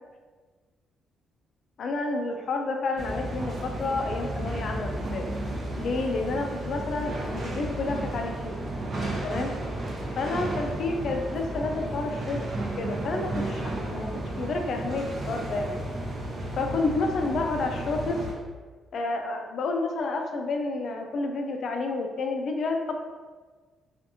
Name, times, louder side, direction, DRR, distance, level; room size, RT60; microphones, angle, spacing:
voice 1, 1.8-5.3 5.8-8.6 9.2-9.5 10.2-12.4 12.8-15.8 16.5-18.2 18.9-22.9, left 3 dB, 60° left, 3 dB, 0.4 m, -30 dB
sound 1, 3.0-18.3, right 1 dB, 45° right, 0.7 m, -33 dB
2.7 x 2.4 x 2.6 m, 1.5 s
cardioid pair, 90°, 0 cm